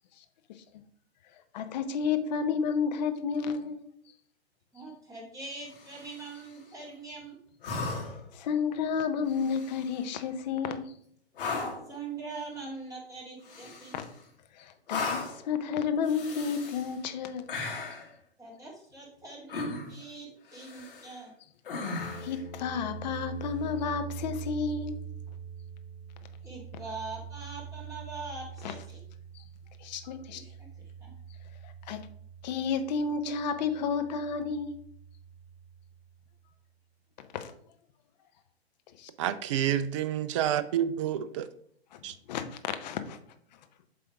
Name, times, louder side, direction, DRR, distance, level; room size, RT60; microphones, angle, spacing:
voice 1, 1.5-3.8 8.3-10.9 13.9-14.1 14.5-17.5 22.2-25.0 28.6-28.7 29.3-29.4 29.8-30.4 31.6-32.0 32.4-34.7 37.3-37.5 39.0-39.1 41.9-42.0 42.3-43.2, left 6 dB, 40° left, 0.8 m, -31 dB
voice 2, 4.7-7.4 11.9-14.0 18.4-21.3 26.4-29.0 30.3-31.1, right 3 dB, 10° right, 2.5 m, -43 dB
sound 1, 5.7-6.4 7.6-8.3 9.3-10.0 11.3-11.9 13.4-14.2 14.9-15.5 16.0-16.9 17.5-18.1 19.5-20.0 20.5-21.2 21.6-22.4 24.3-24.4, left 4 dB, 60° left, 1.8 m, -37 dB
sound 2, 22.0-36.0, right 6 dB, 80° left, 2.2 m, -44 dB
voice 3, 39.2-41.5 42.0-42.2, right 10 dB, 30° right, 0.4 m, -29 dB
7.7 x 3.4 x 4.7 m
figure-of-eight pair, 120°, 32 cm